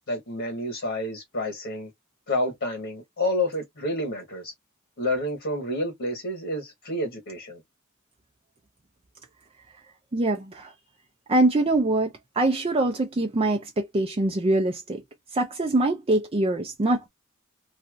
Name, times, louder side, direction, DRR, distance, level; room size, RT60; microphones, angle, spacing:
voice 1, 0.1-1.9 2.3-4.5 5.0-7.6, left 1 dB, 60° left, 1.3 m, -29 dB
voice 2, 10.1-10.7 11.3-15.0 15.3-17.1, right 2 dB, 30° right, 0.5 m, -24 dB
3.2 x 2.7 x 2.4 m
head